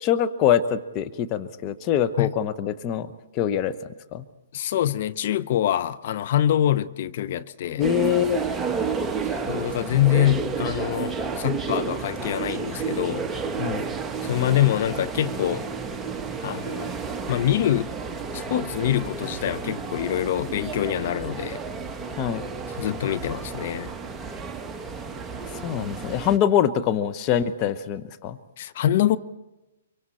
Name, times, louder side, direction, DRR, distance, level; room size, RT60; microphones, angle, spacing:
voice 1, 0.0-3.1 3.3-3.7 4.1-4.2 7.8-8.4 13.6-13.8 22.2-22.4 25.5-28.4, left 9 dB, 30° left, 1.0 m, -24 dB
voice 2, 4.5-7.9 9.5-13.3 14.2-15.7 16.4-16.9 17.3-17.9 18.3-21.6 22.8-23.9 28.6-29.2, left 12 dB, 55° left, 0.7 m, -25 dB
sound 1, 7.8-26.4, right 5 dB, 10° right, 1.3 m, -31 dB
24.5 x 24.5 x 4.3 m
hypercardioid pair, 135°, 0 cm